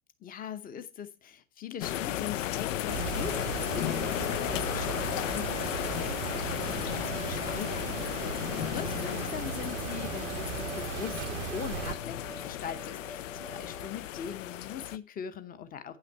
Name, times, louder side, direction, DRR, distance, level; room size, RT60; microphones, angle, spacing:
voice 1, 0.2-8.3 8.6-16.0, left 8 dB, 20° left, 12 dB, 0.9 m, -41 dB
sound 1, 1.8-15.0, left 13 dB, 70° left, 0.6 m, -34 dB
sound 2, 2.9-12.0, right 11 dB, 60° right, 0.7 m, -38 dB
sound 3, 4.7-13.9, right 5 dB, 10° right, 0.4 m, -49 dB
8.5 x 5.8 x 5.6 m, 0.32 s
hypercardioid pair, 115°, 40 cm